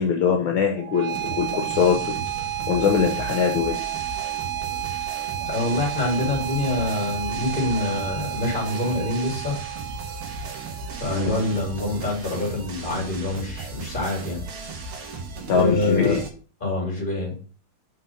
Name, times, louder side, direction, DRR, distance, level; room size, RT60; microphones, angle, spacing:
voice 1, 0.0-2.2 2.7-3.8 11.1-11.3 15.5-16.2, left 6 dB, 70° left, 3 dB, 1.7 m, -22 dB
sound 1, 0.8-11.8, right 14 dB, 60° right, 1.3 m, -32 dB
sound 2, 1.1-16.3, right 3 dB, 85° right, 2.3 m, -36 dB
voice 2, 5.4-9.5 10.9-14.4 15.5-16.2 16.6-17.4, left 2 dB, 20° left, -1 dB, 3.0 m, -26 dB
5.8 x 5.1 x 5.5 m, 0.39 s
omnidirectional pair, 2.4 m